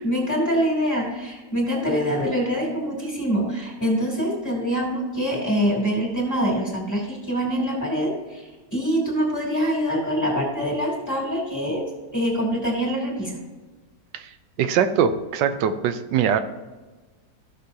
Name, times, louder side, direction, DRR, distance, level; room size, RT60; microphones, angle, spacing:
voice 1, 0.0-8.4 8.7-11.9 12.1-13.4, equal, 10° left, -2 dB, 3.1 m, -24 dB
voice 2, 14.1-16.4, right 8 dB, 90° right, 9 dB, 1.3 m, -22 dB
15.0 x 6.8 x 2.8 m, 1.3 s
omnidirectional pair, 1.9 m